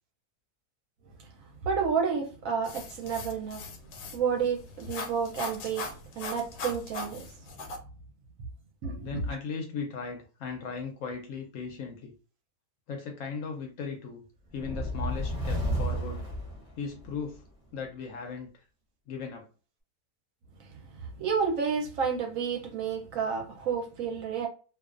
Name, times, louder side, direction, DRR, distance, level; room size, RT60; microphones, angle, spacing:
voice 1, 1.6-3.6 4.1-5.9 6.2-7.3 8.8-9.2 21.2-24.5, right 6 dB, 70° right, 0.9 m, -30 dB
sound 1, 2.6-7.8, left 3 dB, 85° left, 1.1 m, -40 dB
voice 2, 9.0-12.1 12.9-14.2 14.5-16.3 16.8-17.4 17.7-18.5 19.1-19.5, left 5 dB, 70° left, 0.8 m, -37 dB
sound 2, 14.5-17.2, equal, 35° right, 0.6 m, -32 dB
2.4 x 2.3 x 2.4 m
omnidirectional pair, 1.6 m